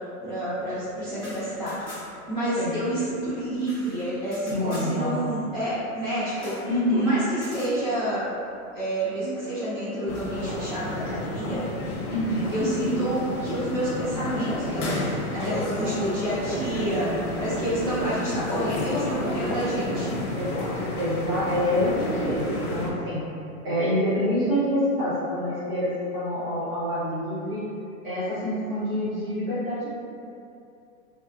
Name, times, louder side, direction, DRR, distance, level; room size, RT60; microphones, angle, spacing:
voice 1, 0.2-8.2 8.7-11.6 12.5-20.2, right 1 dB, 10° right, -20 dB, 0.7 m, -29 dB
sound 1, 1.1-2.3 2.6-2.7 2.9-4.9 6.4-6.7 7.3-7.7, left 1 dB, 5° left, 1.1 m, -44 dB
voice 2, 4.5-5.2 6.6-7.2 12.1-13.0 15.3-15.9 20.3-23.2 23.6-27.6 28.0-29.9, equal, 40° right, -11 dB, 1.2 m, -27 dB
sound 2, 10.1-22.9, left 1 dB, 75° left, 0.8 m, -31 dB
3.4 x 2.4 x 2.3 m, 2.6 s
hypercardioid pair, 170°, 44 cm